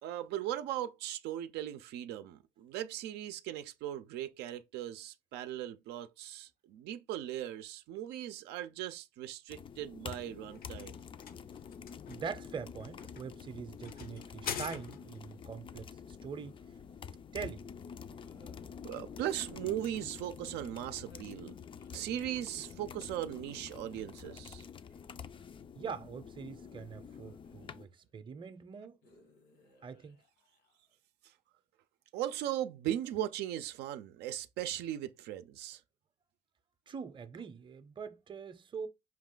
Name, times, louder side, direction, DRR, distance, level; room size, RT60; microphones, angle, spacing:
voice 1, 0.0-11.0 18.8-21.5 21.9-24.6 32.1-35.8, right 12 dB, 85° right, 0.5 m, -38 dB
sound 1, 9.5-27.9, left 7 dB, 30° left, 0.4 m, -48 dB
sound 2, 10.2-15.3, left 8 dB, 60° left, 0.7 m, -45 dB
voice 2, 12.1-16.6 17.3-17.7 25.8-29.0 29.8-30.2 36.9-38.9, right 6 dB, 30° right, 0.6 m, -43 dB
sound 3, 14.0-15.5 16.2-17.2 18.1-20.3 20.9-22.7 23.9-25.6 26.4-28.1 29.0-31.0, left 1 dB, 80° left, 1.8 m, -64 dB
5.8 x 2.4 x 3.7 m
cardioid pair, 110°, 17 cm